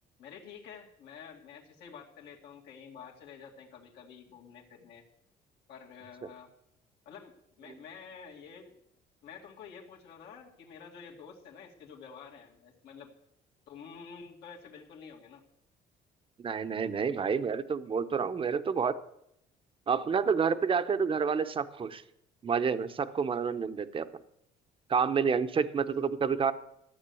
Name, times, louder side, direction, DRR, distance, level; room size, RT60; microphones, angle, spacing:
voice 1, 0.2-5.0 5.7-6.5 7.1-8.7 9.2-13.1 13.7-15.4, left 6 dB, 80° left, -1 dB, 2.2 m, -49 dB
voice 2, 16.4-19.0 19.9-22.0 22.4-24.1 24.9-26.5, right 6 dB, 30° right, 12 dB, 0.8 m, -29 dB
13.5 x 8.0 x 7.0 m, 0.78 s
cardioid pair, 110°, 17 cm